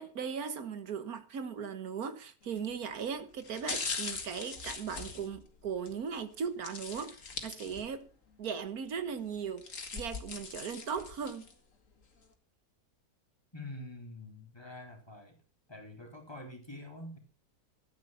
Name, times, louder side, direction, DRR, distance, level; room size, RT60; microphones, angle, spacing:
voice 1, 0.0-8.1 8.4-11.5, right 6 dB, 75° right, 1.7 m, -38 dB
sound 1, 2.4-2.7 3.4-5.9 6.6-8.1 8.5-8.6 9.4-11.5 12.0-12.1, left 4 dB, 60° left, 2.4 m, -41 dB
voice 2, 13.5-15.4 15.7-17.2, left 1 dB, 15° left, 3.4 m, -46 dB
13.5 x 9.8 x 5.7 m
omnidirectional pair, 1.6 m